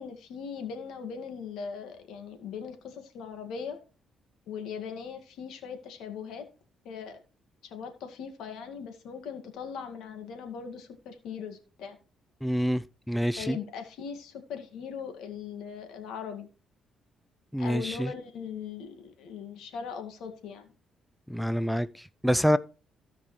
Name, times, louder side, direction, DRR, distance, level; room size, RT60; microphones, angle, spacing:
voice 1, 0.0-3.8 4.5-6.5 6.8-7.2 7.6-12.0 13.4-16.5 17.6-20.7, left 6 dB, 85° left, 2.1 m, -39 dB
voice 2, 12.4-13.6 17.5-18.1 21.3-22.6, equal, ahead, 0.5 m, -27 dB
16.0 x 5.5 x 3.3 m
cardioid pair, 90°, 0 cm